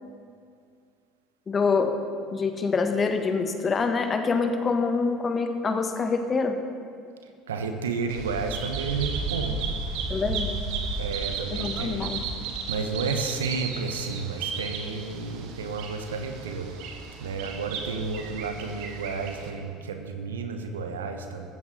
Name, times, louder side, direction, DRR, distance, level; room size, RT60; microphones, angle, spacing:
voice 1, 1.5-2.0 2.3-6.6 10.1-10.5 11.5-12.2, left 4 dB, 30° left, 6 dB, 1.5 m, -25 dB
voice 2, 7.5-9.7 11.0-12.1 12.7-16.7 17.2-21.5, right 4 dB, 80° right, 6 dB, 1.1 m, -31 dB
Bird vocalization bird call bird song, 8.1-19.5, right 4 dB, 60° right, 1.7 m, -34 dB
14.5 x 14.0 x 4.2 m, 2.3 s
figure-of-eight pair, 65°, 0 cm